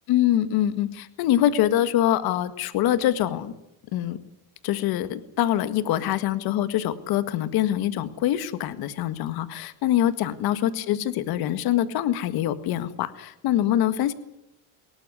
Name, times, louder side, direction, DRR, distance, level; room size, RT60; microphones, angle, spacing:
voice 1, 0.1-3.5 3.9-4.2 4.6-14.1, left 12 dB, 65° left, 12 dB, 1.8 m, -24 dB
20.5 x 18.0 x 9.7 m, 0.83 s
supercardioid pair, 105°, 39 cm